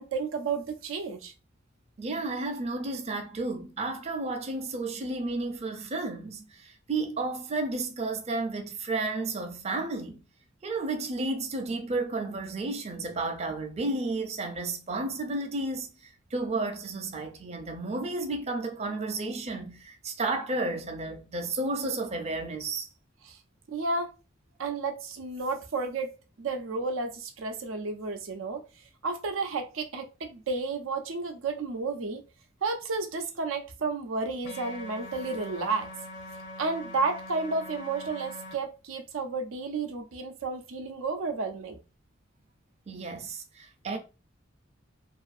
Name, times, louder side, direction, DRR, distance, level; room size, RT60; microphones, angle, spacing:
voice 1, 0.0-1.3 23.2-23.4 23.7-24.1 24.6-28.6 29.0-32.2 32.6-35.9 36.6-41.8, right 3 dB, 90° right, 0.5 m, -32 dB
voice 2, 2.0-10.2 10.6-22.9 42.9-44.0, right 2 dB, 35° right, 0.4 m, -32 dB
sound 1, 34.4-38.5, left 1 dB, 60° left, 0.5 m, -42 dB
2.6 x 2.4 x 2.4 m
head